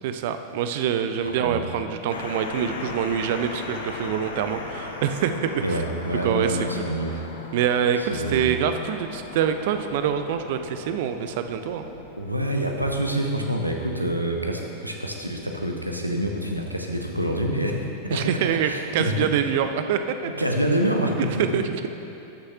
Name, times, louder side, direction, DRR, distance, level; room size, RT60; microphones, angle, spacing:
voice 1, 0.0-5.8 6.2-6.9 7.5-11.9 18.1-20.0 21.2-21.9, right 8 dB, 50° right, 8 dB, 0.4 m, -25 dB
voice 2, 1.2-1.6 5.6-7.2 8.1-8.5 12.2-17.8 18.1-18.3 18.6-19.1 20.4-21.6, right 1 dB, 85° right, 2 dB, 0.7 m, -26 dB
sound 1, 2.1-12.6, left 3 dB, 65° left, 0.7 m, -38 dB
12.0 x 6.4 x 2.8 m, 2.8 s
figure-of-eight pair, 90°, 0 cm